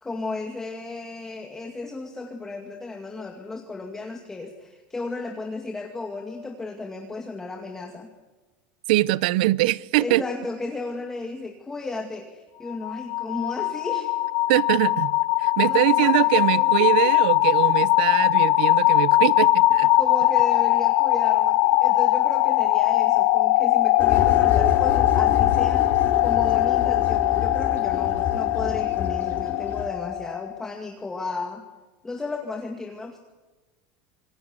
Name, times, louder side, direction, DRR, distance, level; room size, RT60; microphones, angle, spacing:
voice 1, 0.0-8.1 10.0-14.1 15.6-17.1 17.6-17.7 19.9-31.6 32.0-33.2, left 3 dB, 10° left, 2.2 m, -34 dB
voice 2, 8.9-10.2 14.5-15.1 15.4-19.9, right 18 dB, 75° right, 0.7 m, -22 dB
sound 1, 12.7-30.6, left 17 dB, 55° left, 1.2 m, -21 dB
sound 2, 24.0-29.9, left 6 dB, 40° left, 5.0 m, -28 dB
27.0 x 20.5 x 8.3 m
supercardioid pair, 155°, 5 cm